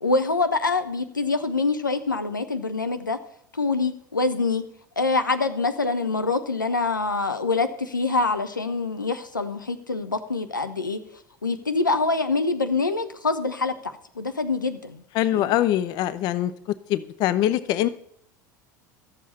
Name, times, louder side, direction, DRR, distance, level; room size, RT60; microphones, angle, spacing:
voice 1, 0.0-3.2 3.5-4.7 5.0-11.0 11.4-15.0 15.3-15.6, left 3 dB, 85° left, 9 dB, 0.7 m, -25 dB
voice 2, 15.1-16.5 16.9-17.9, left 12 dB, 40° left, 15 dB, 0.5 m, -23 dB
13.5 x 7.4 x 4.2 m, 0.69 s
figure-of-eight pair, 75°, 10 cm